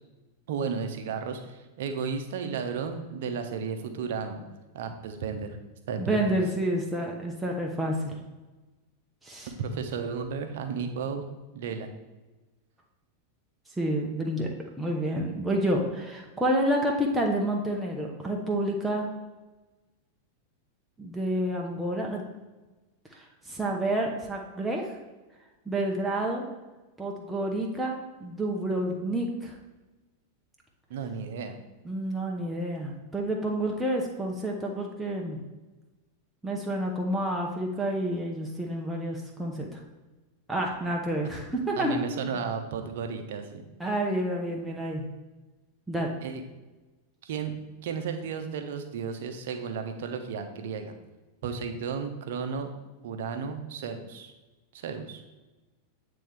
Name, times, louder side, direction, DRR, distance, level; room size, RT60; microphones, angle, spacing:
voice 1, 0.5-4.4 4.7-5.6 5.9-6.3 9.5-11.3 11.5-11.9 30.9-31.6 41.8-43.6 46.2-46.4 47.2-47.5 47.8-51.0 51.4-52.7 53.0-54.3 54.7-55.2, right 6 dB, 55° right, 6 dB, 0.7 m, -33 dB
voice 2, 6.0-8.2 9.2-9.5 13.8-14.5 14.8-19.1 21.0-22.2 23.1-25.0 25.7-26.5 27.0-29.5 31.8-35.4 36.4-39.8 40.5-42.0 43.8-45.1 45.9-46.1, right 1 dB, 5° right, -1 dB, 0.8 m, -29 dB
8.6 x 3.4 x 3.4 m, 1.2 s
figure-of-eight pair, 90°, 0 cm